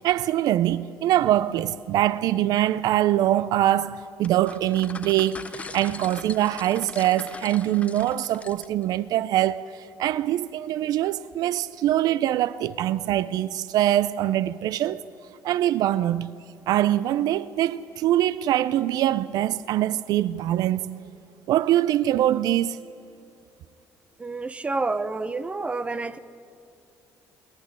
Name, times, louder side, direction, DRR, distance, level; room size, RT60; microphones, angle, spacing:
voice 1, 0.0-15.0 15.4-16.3 16.7-21.0 21.5-22.8, right 13 dB, 70° right, 0.4 m, -23 dB
sound 1, 4.2-8.9, left 3 dB, 20° left, 0.7 m, -41 dB
voice 2, 24.2-26.2, right 3 dB, 20° right, 0.8 m, -29 dB
25.0 x 11.5 x 9.7 m
cardioid pair, 115°, 7 cm